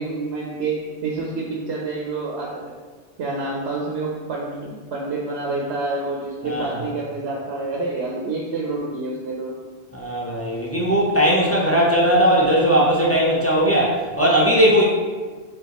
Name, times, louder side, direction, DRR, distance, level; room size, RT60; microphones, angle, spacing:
voice 1, 0.0-2.7 3.2-9.5, right 3 dB, 75° right, -2 dB, 0.9 m, -28 dB
voice 2, 6.4-6.8 9.9-14.8, equal, 20° left, -5 dB, 0.4 m, -18 dB
5.1 x 2.5 x 2.9 m, 1.4 s
omnidirectional pair, 1.1 m